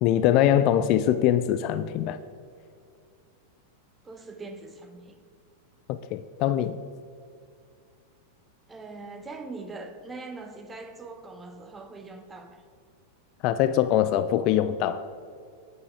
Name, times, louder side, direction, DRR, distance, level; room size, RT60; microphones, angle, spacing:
voice 1, 0.0-2.2 5.9-6.8 13.4-15.1, left 11 dB, 40° left, 0.3 m, -23 dB
voice 2, 4.0-5.2 8.7-12.6, right 3 dB, 15° right, 0.8 m, -42 dB
8.7 x 6.3 x 4.5 m
figure-of-eight pair, 90°, 0 cm